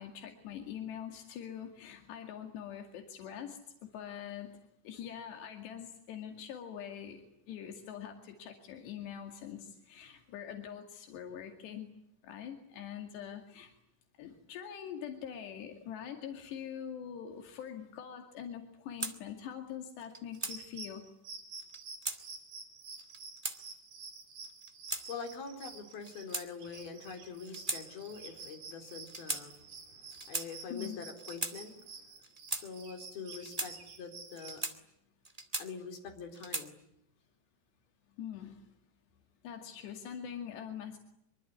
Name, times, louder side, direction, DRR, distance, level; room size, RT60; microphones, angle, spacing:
voice 1, 0.0-4.6 4.8-11.9 12.2-13.7 14.2-21.0 30.7-31.0 38.2-38.7 39.4-41.0, left 9 dB, 85° left, 4 dB, 4.5 m, -44 dB
sound 1, 19.0-19.1 20.0-20.6 21.6-22.2 23.0-23.6 24.4-25.0 25.9-26.8 27.4-27.8 28.1-28.3 29.0-29.4 30.1-30.5 31.2-31.5 32.2-32.6 33.3-33.7 34.3-34.8 35.2-35.9 36.3-36.7, right 2 dB, 15° right, 1.2 m, -38 dB
sound 2, 20.3-34.6, right 4 dB, 60° right, 5.7 m, -49 dB
voice 2, 25.0-32.2 32.5-34.6 35.6-36.8, left 5 dB, 65° left, 4 dB, 6.0 m, -45 dB
25.0 x 24.5 x 9.7 m, 0.77 s
omnidirectional pair, 4.8 m